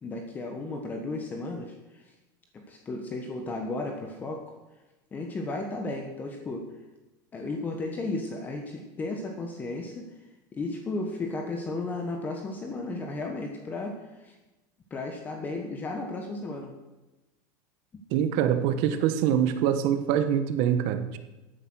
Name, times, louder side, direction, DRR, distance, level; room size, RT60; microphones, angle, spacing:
voice 1, 0.0-2.0 2.5-4.5 5.1-6.7 7.3-10.1 10.5-14.4 14.9-16.7, left 2 dB, 15° left, 3 dB, 1.3 m, -34 dB
voice 2, 18.1-21.2, right 9 dB, 50° right, 10 dB, 1.2 m, -24 dB
14.5 x 9.6 x 6.3 m, 1.1 s
supercardioid pair, 165°, 10 cm